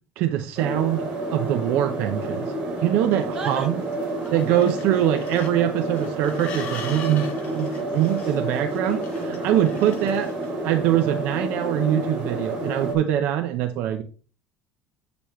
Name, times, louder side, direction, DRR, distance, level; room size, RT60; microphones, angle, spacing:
voice 1, 0.2-2.5 2.8-3.7 4.3-10.3 10.6-14.0, right 11 dB, 60° right, 0.7 m, -23 dB
sound 1, 0.6-12.9, right 2 dB, 40° right, 4.0 m, -29 dB
sound 2, 3.1-10.6, left 5 dB, 45° left, 1.7 m, -42 dB
voice 2, 3.3-3.7 4.0-4.7 8.9-9.9 11.6-11.7, right 5 dB, 20° right, 1.1 m, -38 dB
8.7 x 6.9 x 3.1 m
cardioid pair, 180°, 4 cm